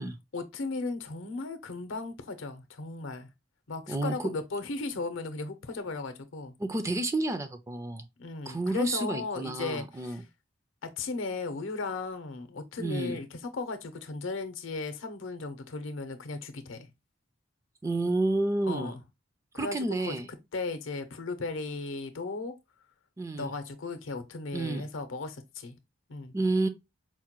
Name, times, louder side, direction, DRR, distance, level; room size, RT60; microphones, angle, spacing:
voice 1, 0.3-3.3 3.7-6.5 8.2-10.2 10.8-16.9 18.7-19.0 19.5-19.8 20.1-20.2 20.5-22.6 23.4-25.8 26.1-26.3, left 3 dB, 80° left, 0.6 m, -36 dB
voice 2, 3.9-4.3 6.6-8.1 8.5-10.2 12.8-13.2 17.8-18.9 19.6-20.3 23.2-23.5 24.5-24.9 26.3-26.7, right 2 dB, 15° right, 0.3 m, -30 dB
4.4 x 2.1 x 2.9 m
head